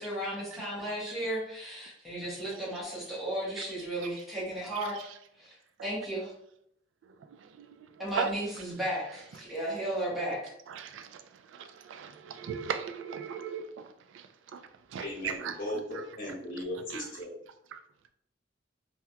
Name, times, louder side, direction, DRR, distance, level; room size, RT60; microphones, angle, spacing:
voice 1, 0.0-5.1 5.4-5.5 5.8-6.3 8.0-10.5, right 1 dB, ahead, 1.2 m, -34 dB
voice 2, 7.3-8.3 10.7-14.3 14.5-15.5 16.9-17.0 17.7-17.8, right 7 dB, 90° right, 0.3 m, -38 dB
voice 3, 15.0-17.3, left 1 dB, 50° left, 1.3 m, -37 dB
3.3 x 2.7 x 2.2 m
head